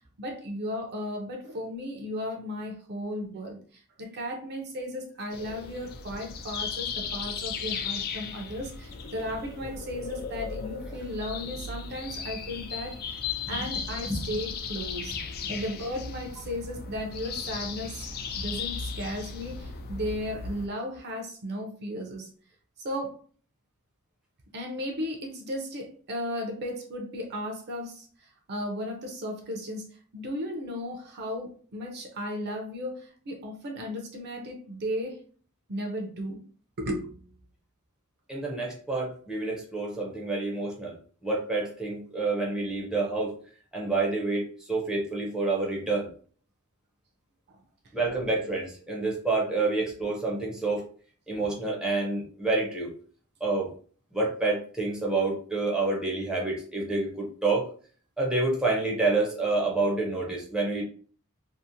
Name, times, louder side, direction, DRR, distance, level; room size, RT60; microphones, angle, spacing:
voice 1, 0.2-13.2 13.5-15.2 15.5-22.3 22.8-23.2 24.5-35.2 35.7-36.4 36.8-37.3 47.5-47.6, equal, 50° right, 2 dB, 0.5 m, -35 dB
sound 1, 5.3-20.7, left 5 dB, 45° left, 0.3 m, -36 dB
voice 2, 38.3-40.9 41.2-43.3 43.7-46.1 47.9-50.8 51.3-52.9 53.4-53.7 54.1-57.7 58.2-60.8, right 3 dB, 5° right, -3 dB, 0.6 m, -28 dB
2.8 x 2.0 x 2.5 m, 0.44 s
head